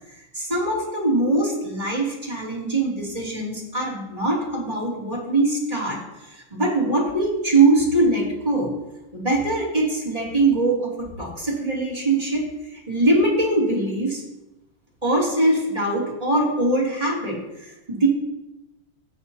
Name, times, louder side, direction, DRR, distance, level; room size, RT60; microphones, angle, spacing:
voice 1, 0.3-8.7 9.1-14.2 15.0-18.1, right 2 dB, 15° right, -5 dB, 2.8 m, -22 dB
17.0 x 6.9 x 2.8 m, 0.96 s
omnidirectional pair, 2.3 m